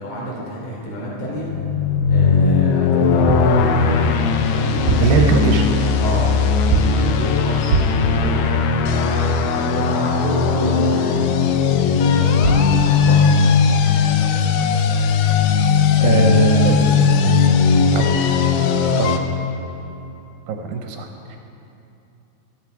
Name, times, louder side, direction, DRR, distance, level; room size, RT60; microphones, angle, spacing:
voice 1, 0.0-1.5 2.1-4.0 4.5-5.5 6.0-6.3 6.6-8.5 8.8-11.3 11.7-13.4 19.1-19.3, equal, 40° left, -5 dB, 4.1 m, -29 dB
sound 1, 1.4-19.2, left 5 dB, 80° left, 2.6 m, -17 dB
sound 2, 3.3-3.6 4.7-5.2 6.7-7.1 7.7-8.1 12.1-12.2 12.4-12.8, right 4 dB, 55° right, 1.2 m, -22 dB
voice 2, 5.0-5.6 16.0-16.8 17.9-18.2 19.0-19.2 20.5-21.4, right 5 dB, 75° right, 4 dB, 2.1 m, -20 dB
14.5 x 14.0 x 4.7 m, 2.8 s
omnidirectional pair, 4.9 m